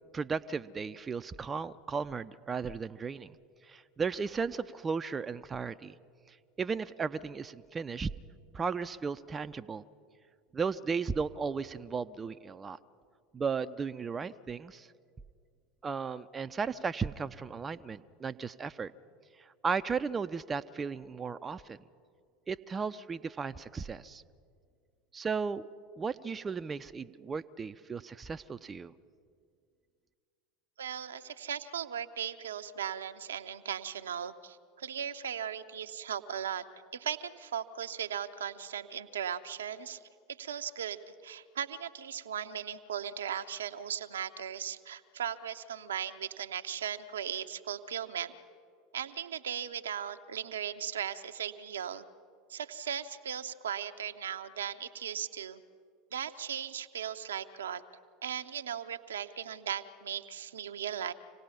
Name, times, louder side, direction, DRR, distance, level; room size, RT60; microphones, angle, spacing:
voice 1, 0.1-3.4 3.6-6.0 6.3-8.1 8.5-9.8 10.5-12.8 13.3-14.9 15.8-18.9 19.4-21.8 22.5-24.2 25.1-25.6 26.0-28.9, right 5 dB, 25° right, 11 dB, 0.5 m, -35 dB
voice 2, 30.8-36.6 36.9-40.0 40.3-48.4 48.9-52.0 52.5-55.6 56.1-57.8 58.2-61.1, right 8 dB, 75° right, 9 dB, 0.7 m, -37 dB
26.5 x 17.5 x 5.6 m, 2.2 s
figure-of-eight pair, 75°, 0 cm